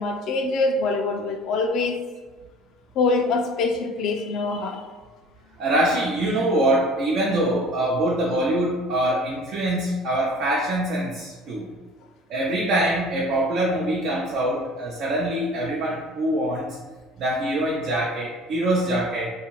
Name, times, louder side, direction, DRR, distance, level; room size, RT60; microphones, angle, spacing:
voice 1, 0.0-2.0 3.0-4.8, left 3 dB, 65° left, 3 dB, 0.3 m, -24 dB
voice 2, 5.6-11.7 12.3-16.8 17.2-19.3, right 1 dB, 65° right, -5 dB, 0.6 m, -24 dB
2.7 x 2.3 x 3.0 m, 1.3 s
supercardioid pair, 75°, 0 cm